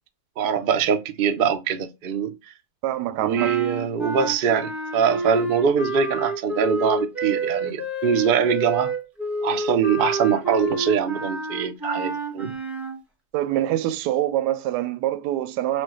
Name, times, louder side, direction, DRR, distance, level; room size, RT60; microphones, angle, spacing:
voice 1, 0.4-2.5 3.2-8.9 9.4-12.5, right 7 dB, 55° right, 0.6 m, -23 dB
voice 2, 2.8-3.5 13.3-15.8, right 13 dB, 90° right, 1.2 m, -25 dB
sound 1, 3.3-13.0, right 2 dB, ahead, 1.0 m, -29 dB
6.1 x 2.2 x 3.0 m
omnidirectional pair, 1.7 m